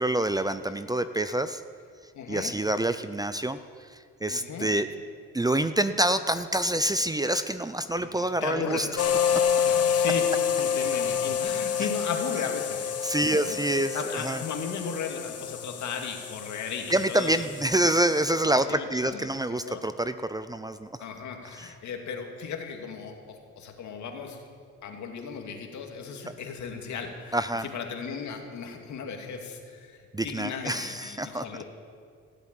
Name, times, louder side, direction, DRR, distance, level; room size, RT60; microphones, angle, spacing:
voice 1, 0.0-1.6 2.3-3.6 4.2-4.9 5.3-8.9 13.0-14.0 14.2-14.4 16.9-20.9 21.6-21.7 27.3-27.7 30.1-31.4, right 1 dB, 15° right, 11 dB, 0.5 m, -26 dB
voice 2, 2.1-2.6 4.3-4.7 8.0-8.9 9.6-17.5 18.7-19.8 21.0-24.4 24.8-31.6, left 6 dB, 70° left, 3 dB, 2.3 m, -36 dB
sound 1, 9.0-18.3, left 7 dB, 55° left, 1.2 m, -28 dB
17.5 x 8.3 x 9.1 m, 2.1 s
cardioid pair, 90°, 30 cm